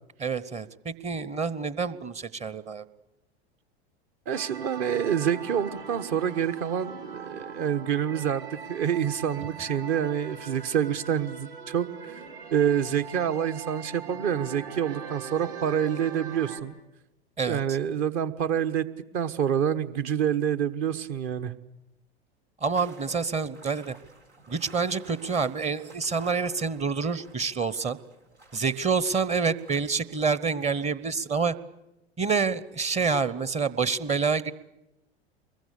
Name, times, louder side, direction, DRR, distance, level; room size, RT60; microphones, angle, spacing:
voice 1, 0.2-2.8 17.4-17.6 22.6-23.9 24.5-28.0 28.5-31.5 32.2-34.5, right 5 dB, 20° right, 17 dB, 1.0 m, -27 dB
voice 2, 4.3-12.2 12.5-16.7 17.5-18.9 19.1-21.5, right 9 dB, 45° right, 10 dB, 1.3 m, -27 dB
sound 1, 4.3-16.6, right 5 dB, 60° right, 4.8 m, -41 dB
sound 2, 22.7-30.9, right 2 dB, 85° right, 4.7 m, -52 dB
25.0 x 22.0 x 8.5 m, 0.91 s
figure-of-eight pair, 90°, 32 cm